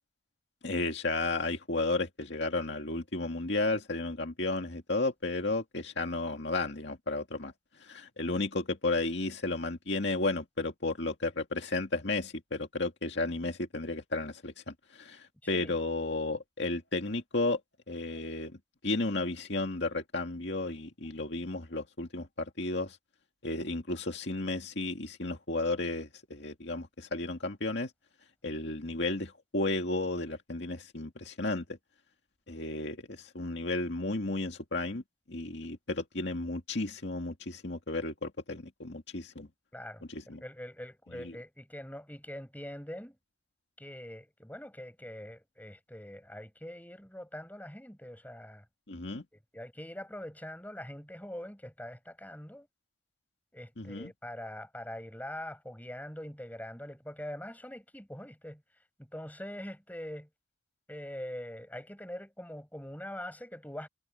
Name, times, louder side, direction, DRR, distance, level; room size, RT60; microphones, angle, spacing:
voice 1, 0.6-7.5 7.8-17.6 17.9-18.6 18.8-23.0 23.4-27.9 28.4-31.8 32.5-35.0 35.3-39.5 40.1-40.4 41.1-41.3 48.9-49.2 53.8-54.1, left 2 dB, 60° left, 2.2 m, -33 dB
voice 2, 15.4-15.7 39.7-43.2 43.8-48.6 49.5-52.7 53.5-58.6 59.0-60.3 60.9-63.9, left 1 dB, 10° left, 7.2 m, -43 dB
head